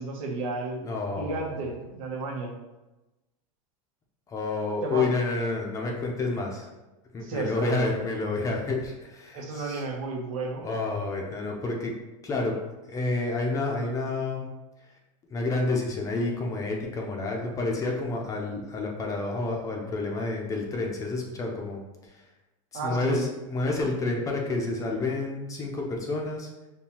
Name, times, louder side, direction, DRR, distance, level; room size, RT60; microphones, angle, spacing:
voice 1, 0.0-0.9 1.2-2.5 4.8-5.1 7.2-7.8 9.3-10.6 22.7-23.3, right 3 dB, 75° right, 0 dB, 0.9 m, -32 dB
voice 2, 0.8-1.6 4.3-6.7 7.1-9.8 10.6-11.9 12.2-12.6 12.9-14.5 15.3-22.2 22.7-26.5, left 3 dB, 20° left, 0 dB, 0.5 m, -29 dB
5.4 x 2.3 x 2.9 m, 1.0 s
supercardioid pair, 150°, 18 cm